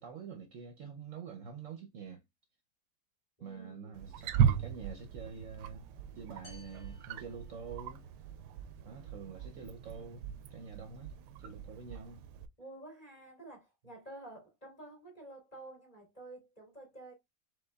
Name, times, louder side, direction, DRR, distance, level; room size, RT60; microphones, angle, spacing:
voice 1, 0.0-2.2 3.4-5.8 6.2-8.0 8.8-12.2, right 6 dB, 60° right, 0.9 m, -47 dB
voice 2, 3.4-4.0 12.6-17.1, right 2 dB, 20° left, 2.5 m, -50 dB
Wild animals, 3.9-12.5, right 8 dB, 90° right, 1.2 m, -36 dB
sound 1, 6.4-8.2, left 4 dB, 70° left, 2.4 m, -58 dB
5.1 x 3.9 x 2.2 m
omnidirectional pair, 1.7 m